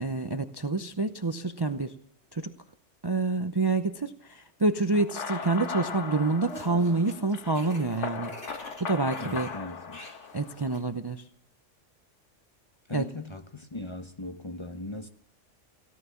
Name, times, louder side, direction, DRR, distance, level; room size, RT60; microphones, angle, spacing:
voice 1, 0.0-2.0 2.3-2.5 3.0-8.3 8.8-9.5 10.3-11.2 12.9-13.1, right 3 dB, 25° right, 0.6 m, -27 dB
sound 1, 4.9-10.7, left 5 dB, 70° left, 1.6 m, -38 dB
sound 2, 5.5-6.0 6.2-10.9, left 1 dB, 45° left, 3.4 m, -49 dB
voice 2, 9.2-10.0 12.9-15.1, left 2 dB, 25° left, 0.9 m, -39 dB
17.0 x 11.5 x 7.1 m
omnidirectional pair, 1.3 m